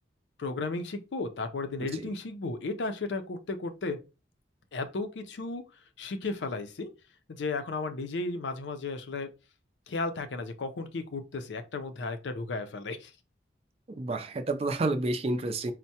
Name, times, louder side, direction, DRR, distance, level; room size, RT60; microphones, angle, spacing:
voice 1, 0.4-4.0 4.7-5.6 6.0-6.9 7.3-9.3 9.9-13.1, left 3 dB, 80° left, 0.5 m, -34 dB
voice 2, 13.9-15.7, right 2 dB, 35° right, 0.4 m, -30 dB
4.4 x 2.1 x 2.7 m
head